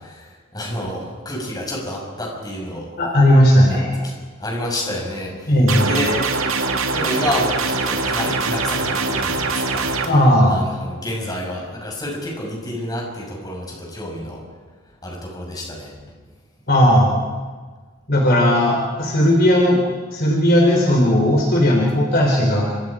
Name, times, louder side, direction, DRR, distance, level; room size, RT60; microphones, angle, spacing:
voice 1, 0.0-2.9 3.7-6.2 6.9-9.9 10.5-14.4 15.0-15.9, left 1 dB, 20° left, -1 dB, 6.0 m, -29 dB
voice 2, 3.0-3.9 5.5-5.9 10.0-10.6 16.7-17.2 18.1-19.8 20.1-22.8, equal, 50° left, -1 dB, 4.0 m, -16 dB
sound 1, 5.7-10.1, right 3 dB, 80° right, 2.4 m, -22 dB
29.0 x 26.0 x 5.1 m, 1.4 s
head